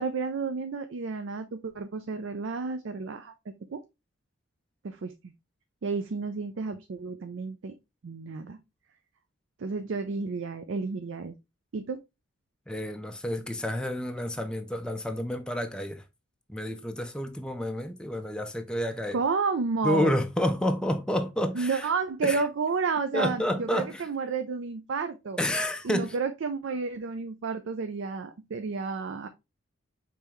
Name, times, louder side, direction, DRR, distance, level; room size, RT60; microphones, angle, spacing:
voice 1, 0.0-3.3 3.7-3.8 4.8-5.1 5.8-7.7 8.0-8.6 9.6-11.3 11.7-12.0 19.1-20.2 21.5-25.4 25.8-29.3, right 4 dB, 65° right, 0.4 m, -31 dB
voice 2, 12.7-16.0 16.5-19.2 19.8-21.9 22.2-22.4 23.1-24.0 25.4-26.1, left 1 dB, 5° left, 0.4 m, -29 dB
5.3 x 3.3 x 3.0 m
head